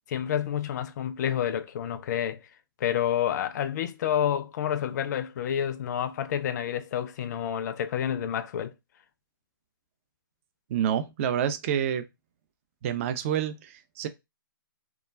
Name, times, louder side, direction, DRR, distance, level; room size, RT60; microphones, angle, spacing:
voice 1, 0.1-2.4 2.8-8.7, left 9 dB, 50° left, 0.4 m, -29 dB
voice 2, 10.7-12.1 12.8-14.1, right 9 dB, 35° right, 0.3 m, -28 dB
2.3 x 2.2 x 3.2 m
hypercardioid pair, 140°, 12 cm